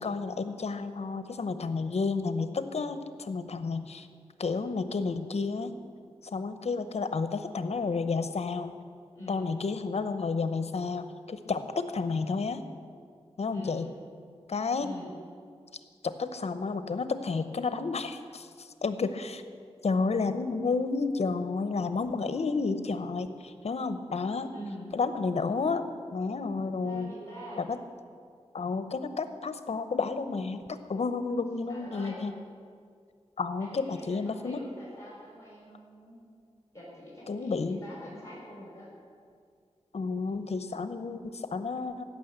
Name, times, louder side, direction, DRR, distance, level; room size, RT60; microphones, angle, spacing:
voice 1, 0.0-4.1 4.4-5.7 6.3-8.7 9.3-12.6 13.4-13.9 14.5-14.9 16.0-19.4 19.8-24.5 24.9-25.8 26.1-27.1 27.6-27.8 28.5-32.3 33.4-34.6 37.3-37.8 39.9-42.0, left 4 dB, 70° left, 10 dB, 0.8 m, -31 dB
voice 2, 9.1-9.5 13.5-13.8 14.8-15.1 23.6-23.7 24.5-24.8 26.8-27.7 31.7-32.2 33.6-36.2 36.7-38.9, equal, 25° left, -5 dB, 4.3 m, -45 dB
15.5 x 6.3 x 7.9 m, 2.2 s
wide cardioid pair, 95°, 11 cm